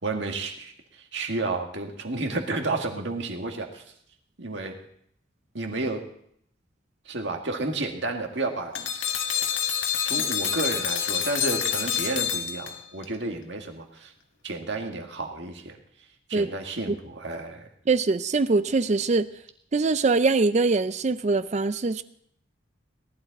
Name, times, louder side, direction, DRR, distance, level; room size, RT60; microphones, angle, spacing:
voice 1, 0.0-3.8 4.4-4.8 5.5-6.0 7.1-8.7 10.0-14.1 14.4-15.8 16.3-17.7, right 2 dB, 60° right, 3 dB, 1.9 m, -31 dB
sound 1, 8.7-13.0, left 8 dB, 75° left, 1.7 m, -27 dB
voice 2, 17.9-19.3 19.7-22.0, right 3 dB, 35° right, 13 dB, 0.4 m, -23 dB
18.5 x 12.0 x 4.1 m, 0.68 s
head